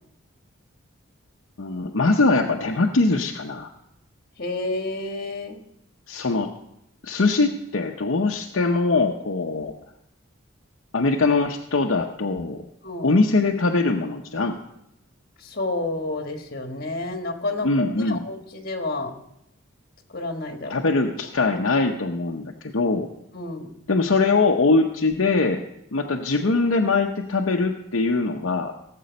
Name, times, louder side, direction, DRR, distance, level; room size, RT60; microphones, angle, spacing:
voice 1, 1.6-3.7 6.1-6.5 7.0-9.7 10.9-12.6 13.0-14.6 17.6-18.2 20.7-23.1 23.9-25.6 25.9-28.7, left 3 dB, 65° left, 1 dB, 0.7 m, -22 dB
voice 2, 4.4-5.6 12.8-13.2 15.4-19.1 20.1-20.7 23.3-23.7, left 2 dB, 45° left, 4 dB, 1.5 m, -30 dB
16.5 x 7.6 x 5.1 m, 0.83 s
head